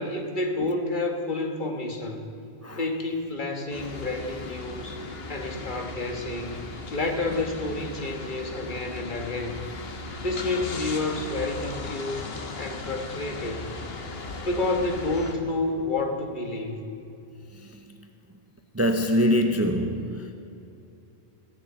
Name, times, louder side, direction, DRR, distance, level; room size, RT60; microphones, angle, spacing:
voice 1, 0.0-2.3 2.6-6.6 6.9-9.6 10.2-12.3 12.6-13.7 14.4-16.9, left 2 dB, 50° left, 1.5 m, -29 dB
sound 1, 3.7-15.4, left 3 dB, 70° left, 1.4 m, -37 dB
voice 2, 17.5-18.1 18.7-20.3, equal, 20° right, 0.6 m, -25 dB
15.5 x 6.7 x 8.9 m
omnidirectional pair, 1.1 m